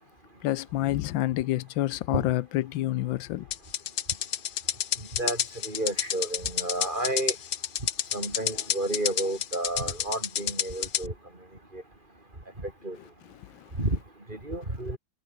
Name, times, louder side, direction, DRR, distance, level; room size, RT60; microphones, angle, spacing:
voice 1, 0.4-3.4, left 15 dB, 90° left, 1.4 m, -28 dB
sound 1, 3.5-11.1, left 10 dB, 60° left, 1.3 m, -29 dB
voice 2, 5.6-7.3 8.1-11.1 11.7-11.8 12.6-13.0 13.8-14.0 14.3-15.0, right 1 dB, 25° right, 4.7 m, -31 dB
omnidirectional pair, 2.0 m